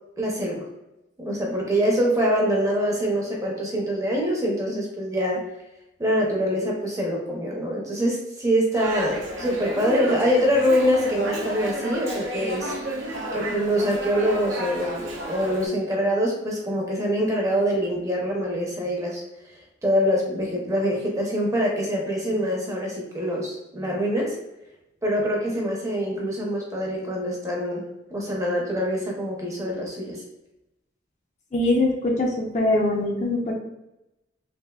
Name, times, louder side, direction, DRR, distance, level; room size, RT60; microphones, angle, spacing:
voice 1, 0.2-0.6 1.2-5.4 6.0-12.7 13.3-15.0 15.3-19.2 19.8-24.4 25.0-27.8 28.1-30.2, equal, 15° right, -2 dB, 0.6 m, -24 dB
Dog, 8.7-15.7, equal, 80° right, 0.7 m, -31 dB
voice 2, 31.5-33.5, left 2 dB, 35° left, 0 dB, 0.4 m, -22 dB
3.3 x 2.4 x 2.3 m, 0.90 s
head